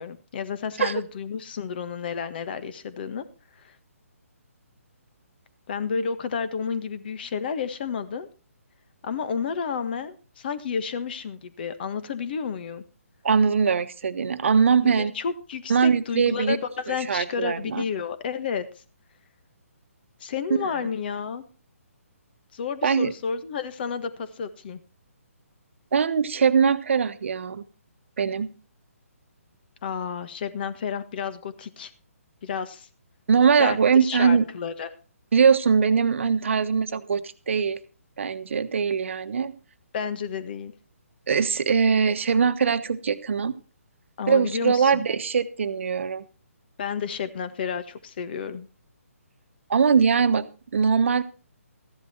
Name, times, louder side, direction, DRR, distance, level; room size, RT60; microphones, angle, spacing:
voice 1, 0.0-3.2 3.6-3.8 5.7-8.3 9.0-12.8 14.8-18.7 20.2-21.4 22.5-24.8 29.8-31.9 32.4-32.9 33.6-34.9 39.9-40.7 44.2-45.1 46.8-48.7, left 6 dB, 40° left, 12 dB, 1.5 m, -31 dB
voice 2, 13.2-15.1 15.7-16.6 16.9-17.8 22.8-23.1 25.9-27.6 28.2-28.5 33.3-34.4 35.3-37.8 38.2-39.5 41.3-43.5 44.3-46.2 49.7-50.4 50.7-51.2, right 6 dB, 55° right, 11 dB, 1.2 m, -21 dB
14.5 x 11.5 x 4.4 m, 0.35 s
figure-of-eight pair, 140°, 8 cm